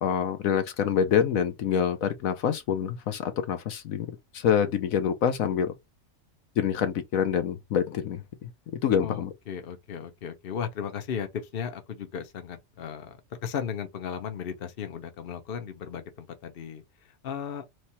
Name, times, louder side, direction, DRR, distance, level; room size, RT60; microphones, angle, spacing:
voice 1, 0.0-4.1 4.3-5.7 6.6-8.5 8.8-9.3, left 8 dB, 70° left, 1.1 m, -26 dB
voice 2, 9.0-16.8 17.2-17.6, left 7 dB, 50° left, 0.9 m, -36 dB
3.3 x 3.1 x 4.2 m
omnidirectional pair, 1.5 m